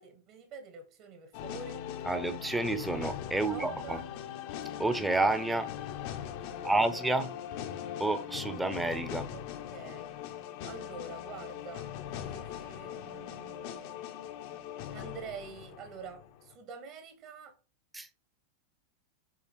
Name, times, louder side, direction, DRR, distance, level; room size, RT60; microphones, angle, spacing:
voice 1, 0.0-1.9 3.3-4.1 6.5-6.7 9.3-10.2 10.6-14.0 14.9-17.6, right 5 dB, 45° right, 1.6 m, -47 dB
sound 1, 1.3-16.6, left 10 dB, 45° left, 0.9 m, -41 dB
voice 2, 2.0-4.0 4.8-5.7 6.6-7.3 8.0-9.3 17.9-18.1, right 2 dB, 5° right, 0.9 m, -29 dB
7.2 x 3.8 x 4.7 m
figure-of-eight pair, 90°, 0 cm